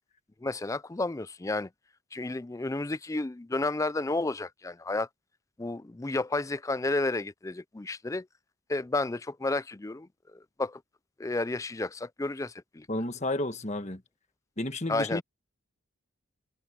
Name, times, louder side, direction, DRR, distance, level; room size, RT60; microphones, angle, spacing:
voice 1, 0.4-1.7 2.1-5.1 5.6-8.3 8.7-10.8 11.2-12.9 14.9-15.2, left 2 dB, 15° left, 0.3 m, -31 dB
voice 2, 12.9-14.0 14.6-15.2, left 1 dB, 30° left, 1.5 m, -31 dB
head